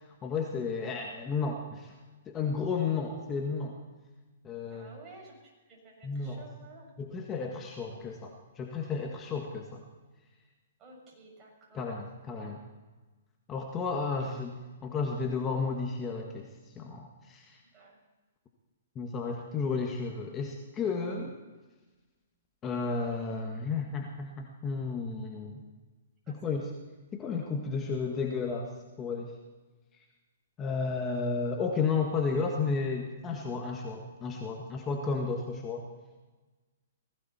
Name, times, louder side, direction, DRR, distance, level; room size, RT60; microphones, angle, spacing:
voice 1, 0.2-2.0 2.3-3.7 4.4-4.9 6.0-6.5 7.0-9.8 11.7-12.6 13.5-14.6 14.8-16.5 16.7-17.6 18.9-21.3 22.6-25.6 26.3-26.7 27.1-28.7 29.0-29.3 30.6-35.9, left 4 dB, 20° left, 1 dB, 1.8 m, -32 dB
voice 2, 4.7-6.9 10.8-12.0 12.3-12.5 14.0-14.3 17.7-18.0 26.2-26.5, right 3 dB, 25° right, -1 dB, 6.8 m, -53 dB
20.0 x 16.0 x 4.4 m, 1.3 s
hypercardioid pair, 130°, 0 cm